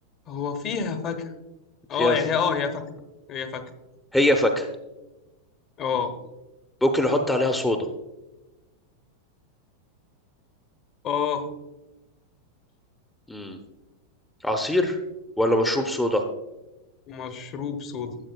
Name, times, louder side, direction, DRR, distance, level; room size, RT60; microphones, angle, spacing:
voice 1, 0.3-1.3 1.9-2.9 3.3-3.6 5.8-6.1 11.0-11.5 17.1-18.2, left 6 dB, 35° left, 7 dB, 0.9 m, -28 dB
voice 2, 4.1-4.7 6.8-7.9 13.3-13.6 14.4-15.0 15.4-16.2, left 1 dB, 5° left, 4 dB, 0.7 m, -22 dB
12.0 x 7.9 x 2.3 m, 1.0 s
figure-of-eight pair, 90°, 0 cm